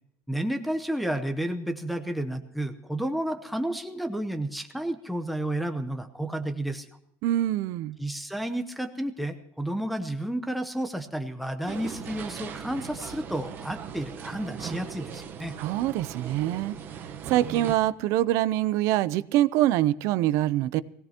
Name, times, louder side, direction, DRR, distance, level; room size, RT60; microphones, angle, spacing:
voice 1, 0.3-6.9 8.0-15.5, right 1 dB, ahead, 6 dB, 0.8 m, -31 dB
voice 2, 7.2-8.0 15.6-16.8 17.3-20.8, right 14 dB, 55° right, 18 dB, 0.5 m, -24 dB
sound 1, 11.7-17.8, right 7 dB, 35° right, 1.0 m, -39 dB
21.5 x 17.0 x 2.9 m, 0.77 s
cardioid pair, 165°, 6 cm